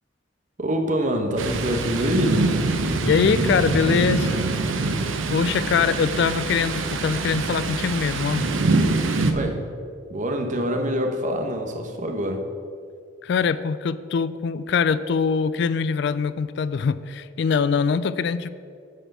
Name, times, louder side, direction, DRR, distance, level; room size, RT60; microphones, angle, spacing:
voice 1, 0.6-2.4 9.3-9.6 10.1-12.4, equal, 40° right, 4 dB, 0.9 m, -25 dB
Thunder, 1.4-9.3, right 3 dB, 90° right, 0.7 m, -24 dB
voice 2, 3.0-4.4 5.3-8.4 13.2-18.5, left 6 dB, 60° left, 15 dB, 0.3 m, -23 dB
10.0 x 4.6 x 6.6 m, 2.3 s
head